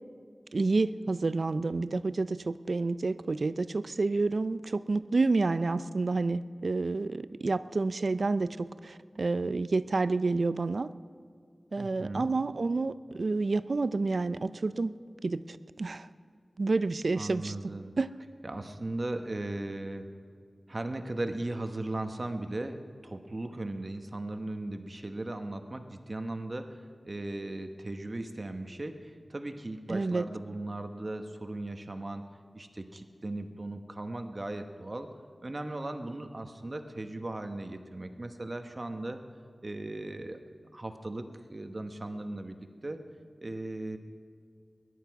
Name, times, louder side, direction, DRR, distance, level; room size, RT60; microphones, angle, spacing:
voice 1, 0.5-10.9 11.7-15.0 15.2-16.1 16.6-17.5 18.0-18.1 29.9-30.3, right 3 dB, 70° right, 14 dB, 0.4 m, -29 dB
voice 2, 11.8-12.3 17.2-17.9 18.4-20.1 20.7-32.2 32.5-35.1 35.4-39.2 39.6-40.4 40.7-43.0 43.4-44.0, right 2 dB, 40° right, 7 dB, 1.0 m, -37 dB
21.5 x 11.0 x 4.7 m, 2.1 s
wide cardioid pair, 70°, 0 cm